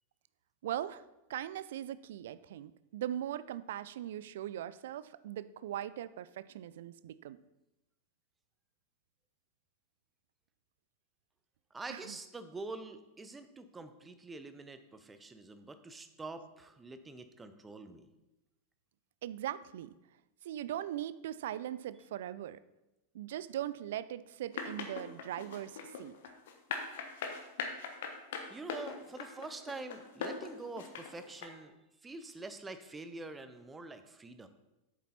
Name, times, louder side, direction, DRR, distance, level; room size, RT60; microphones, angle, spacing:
voice 1, 0.6-1.0 1.3-7.4 11.9-12.2 19.2-19.9 20.4-22.6 23.1-26.3, right 11 dB, 55° right, 16 dB, 0.3 m, -40 dB
voice 2, 11.7-18.1 27.2-27.4 28.5-31.8 32.0-34.5, right 3 dB, 15° right, 10 dB, 0.7 m, -46 dB
sound 1, 24.5-31.5, left 6 dB, 55° left, 1.1 m, -40 dB
8.2 x 7.3 x 4.2 m, 0.97 s
figure-of-eight pair, 90°, 0 cm